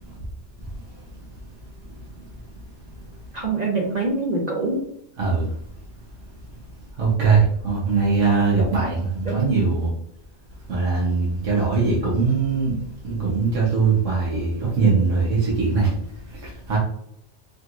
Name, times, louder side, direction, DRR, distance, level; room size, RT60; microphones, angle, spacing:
voice 1, 3.3-4.8 9.3-9.6, right 3 dB, 45° right, -2 dB, 0.7 m, -24 dB
voice 2, 7.0-9.9 10.7-12.7 13.0-15.9 16.3-16.8, right 4 dB, 85° right, -6 dB, 1.4 m, -21 dB
5.0 x 3.0 x 2.5 m, 0.71 s
omnidirectional pair, 1.2 m